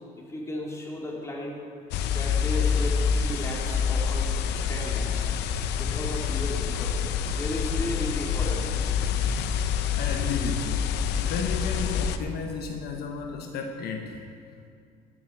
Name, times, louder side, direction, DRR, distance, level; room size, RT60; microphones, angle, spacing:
voice 1, 0.2-1.6 2.1-4.3 4.7-5.3 5.8-7.0 7.3-8.7, left 1 dB, 15° left, -3 dB, 3.1 m, -35 dB
sound 1, 1.9-12.2, left 7 dB, 90° left, 0.7 m, -27 dB
voice 2, 10.0-14.2, left 5 dB, 70° left, 3 dB, 1.1 m, -33 dB
17.0 x 10.0 x 4.7 m, 2.3 s
cardioid pair, 110°, 17 cm